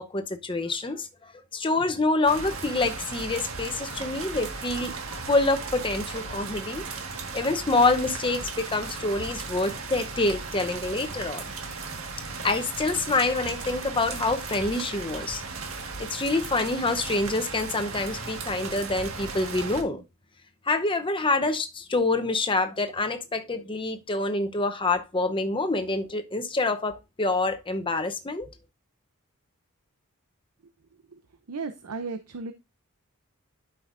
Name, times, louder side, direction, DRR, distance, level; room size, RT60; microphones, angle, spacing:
voice 1, 0.0-4.9 5.3-6.9 7.3-11.5 12.4-15.4 16.0-20.0 20.7-28.5, left 3 dB, 25° left, 0.8 m, -26 dB
sound 1, 2.3-19.8, right 4 dB, 65° right, 1.6 m, -36 dB
voice 2, 31.5-32.5, right 4 dB, 90° right, 0.7 m, -34 dB
11.5 x 5.6 x 2.6 m
head